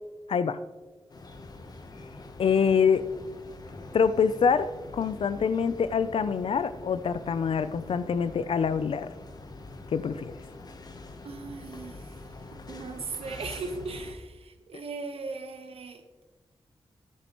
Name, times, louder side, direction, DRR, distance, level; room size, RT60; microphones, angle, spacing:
sound 1, 1.1-14.1, left 2 dB, 40° left, 1.0 m, -45 dB
voice 1, 2.4-3.1 3.9-9.1 9.9-10.3, left 6 dB, 70° left, 13 dB, 0.5 m, -25 dB
voice 2, 11.2-12.3 12.7-16.0, right 4 dB, 80° right, 7 dB, 1.1 m, -38 dB
13.5 x 10.0 x 3.0 m, 1.3 s
wide cardioid pair, 110°, 10 cm